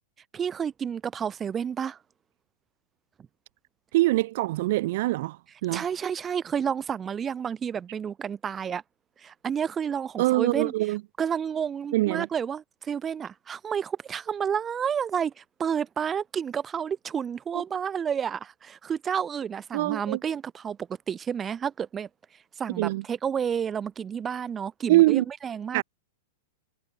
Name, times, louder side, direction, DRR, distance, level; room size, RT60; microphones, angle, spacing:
voice 1, 0.3-2.0 5.7-8.8 9.2-10.7 11.2-20.8 21.1-22.1 22.6-25.8, right 7 dB, 20° right, 5.3 m, -30 dB
voice 2, 3.9-5.9 10.2-11.0 11.9-12.3 17.5-17.6 19.7-20.2 22.8-23.0 24.9-25.3 25.7-25.8, right 18 dB, 60° right, 7.0 m, -23 dB
hypercardioid pair, 115°, 0 cm